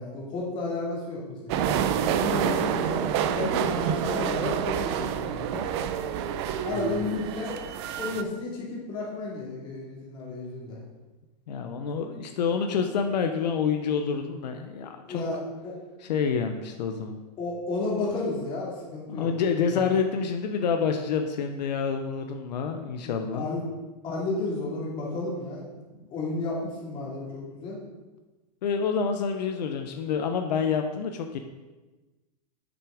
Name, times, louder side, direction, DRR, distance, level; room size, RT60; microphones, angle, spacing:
voice 1, 0.0-1.6 2.1-3.1 3.3-5.7 6.6-7.6 8.0-10.8 15.1-15.7 17.4-19.3 19.7-19.8 23.0-23.6 24.0-25.6 26.1-27.8, left 2 dB, 25° left, -4 dB, 2.5 m, -32 dB
sound 1, 1.5-8.2, right 8 dB, 40° right, 0.5 m, -28 dB
voice 2, 11.5-15.2 16.1-17.2 19.1-23.5 28.6-31.4, left 6 dB, 80° left, 5 dB, 0.9 m, -28 dB
8.1 x 6.2 x 5.0 m, 1.2 s
supercardioid pair, 160°, 21 cm